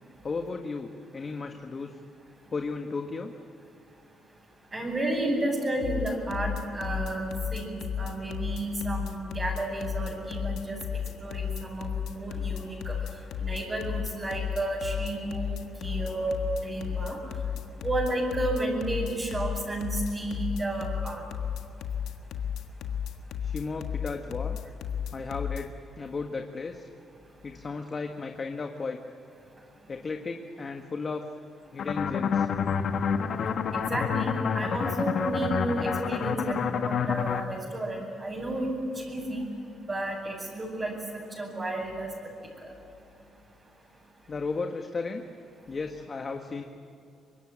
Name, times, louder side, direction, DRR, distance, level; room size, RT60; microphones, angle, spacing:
voice 1, 0.2-2.0 2.5-3.3 23.4-24.6 25.1-26.9 27.4-29.0 29.9-31.2 31.7-32.5 44.3-45.2 45.7-46.6, left 4 dB, 35° left, 4 dB, 1.6 m, -34 dB
voice 2, 4.7-10.8 11.2-12.9 13.4-16.3 16.6-17.2 17.8-21.2 33.7-39.4 39.9-42.1, right 1 dB, 25° right, -5 dB, 6.7 m, -32 dB
sound 1, 5.8-25.6, left 8 dB, 85° left, 1.6 m, -33 dB
sound 2, 31.8-37.4, left 7 dB, 60° left, 1.5 m, -28 dB
25.0 x 22.0 x 8.9 m, 2.6 s
cardioid pair, 90°, 0 cm